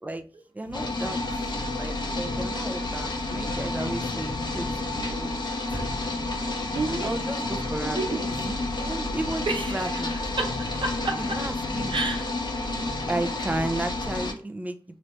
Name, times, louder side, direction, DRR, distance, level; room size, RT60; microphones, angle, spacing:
voice 1, 0.5-1.2 1.8-4.7 4.9-5.3 5.7-5.9 7.0-8.2 8.8-10.1 11.2-11.9 13.1-14.8, right 2 dB, 15° right, 7 dB, 0.6 m, -33 dB
sound 1, 0.6-14.3, left 1 dB, 80° left, 0.9 m, -37 dB
sound 2, 0.7-14.3, left 2 dB, 55° left, 0.8 m, -31 dB
voice 2, 6.7-7.2 7.9-8.6 9.5-10.1 10.4-11.4 11.9-12.3, right 3 dB, 65° right, 3 dB, 0.9 m, -30 dB
3.1 x 2.8 x 3.3 m, 0.40 s
cardioid pair, 40°, 9 cm